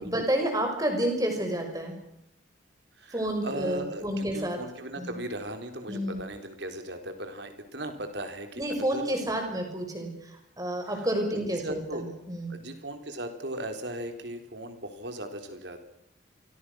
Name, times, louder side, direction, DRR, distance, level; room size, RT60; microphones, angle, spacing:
voice 1, 0.0-2.0 3.1-4.6 5.0-5.2 5.9-6.2 8.6-12.5, right 1 dB, 20° right, 4 dB, 5.8 m, -30 dB
voice 2, 3.0-8.6 8.9-9.3 10.9-11.1 11.3-12.1 12.5-15.8, right 1 dB, 65° right, 6 dB, 4.0 m, -38 dB
28.5 x 24.0 x 6.4 m, 0.79 s
head